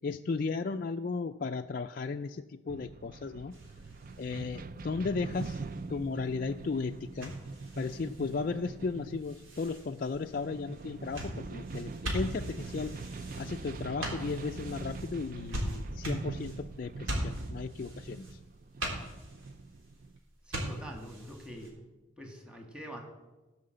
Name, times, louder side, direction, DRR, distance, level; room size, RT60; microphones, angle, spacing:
voice 1, 0.0-3.5 4.2-5.6 5.9-7.3 7.8-13.1 13.4-18.4, left 4 dB, 45° left, 4 dB, 0.4 m, -35 dB
sound 1, 2.7-20.2, right 3 dB, 45° right, 0.4 m, -43 dB
sound 2, 3.5-21.7, equal, 85° right, 3.6 m, -42 dB
voice 2, 20.5-21.9 22.2-23.0, equal, 5° right, 1 dB, 1.8 m, -45 dB
16.5 x 5.7 x 7.8 m, 1.1 s
head